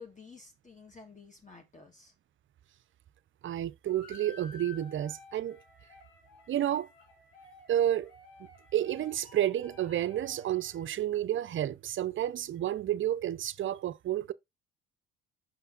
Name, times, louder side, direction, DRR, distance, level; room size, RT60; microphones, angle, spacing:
voice 1, 0.0-2.1, left 4 dB, 25° left, 2.0 m, -51 dB
voice 2, 3.4-5.6 6.5-6.9 7.7-8.1 8.7-14.3, right 12 dB, 40° right, 0.5 m, -30 dB
sound 1, 3.9-10.9, left 3 dB, 85° left, 2.6 m, -54 dB
5.8 x 5.6 x 3.8 m
hypercardioid pair, 60°, 31 cm